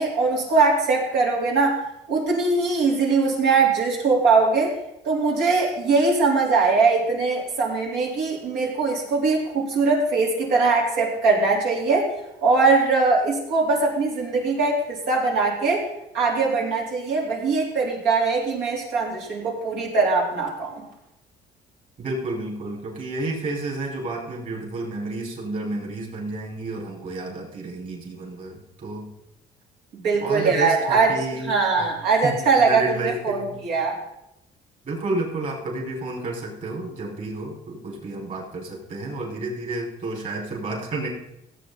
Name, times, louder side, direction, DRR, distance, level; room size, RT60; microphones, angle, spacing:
voice 1, 0.0-1.8 2.1-4.7 5.0-12.1 12.4-15.8 16.1-20.8 30.0-31.1 31.4-34.0, right 4 dB, 85° right, -2 dB, 3.9 m, -21 dB
voice 2, 22.0-29.1 30.2-31.9 32.2-33.6 34.9-41.1, right 2 dB, 50° right, -2 dB, 5.1 m, -31 dB
17.0 x 8.3 x 4.1 m, 0.85 s
cardioid pair, 110°, 17 cm